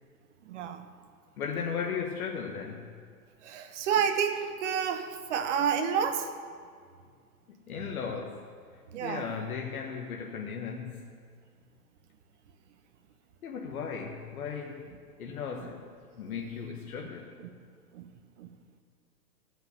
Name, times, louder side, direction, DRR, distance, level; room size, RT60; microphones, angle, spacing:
voice 1, 0.4-0.8 3.4-6.3 8.9-9.3 17.4-17.5 17.9-18.1 18.4-18.5, right 7 dB, 50° right, 8 dB, 1.1 m, -29 dB
voice 2, 1.4-2.9 7.5-8.5 9.0-11.1 13.4-14.9 15.2-17.3, left 6 dB, 65° left, 1 dB, 1.2 m, -36 dB
15.0 x 5.8 x 6.8 m, 2.1 s
hypercardioid pair, 140°, 46 cm